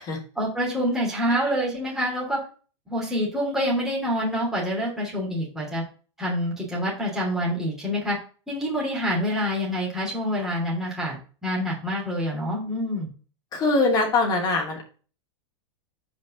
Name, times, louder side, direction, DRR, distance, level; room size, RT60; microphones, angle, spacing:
voice 1, 0.3-2.4 2.9-5.8 6.2-8.2 8.5-13.1, equal, 5° right, -5 dB, 3.3 m, -26 dB
voice 2, 13.5-14.8, left 3 dB, 25° left, 0 dB, 2.8 m, -22 dB
5.3 x 5.2 x 6.2 m, 0.38 s
supercardioid pair, 140°, 15 cm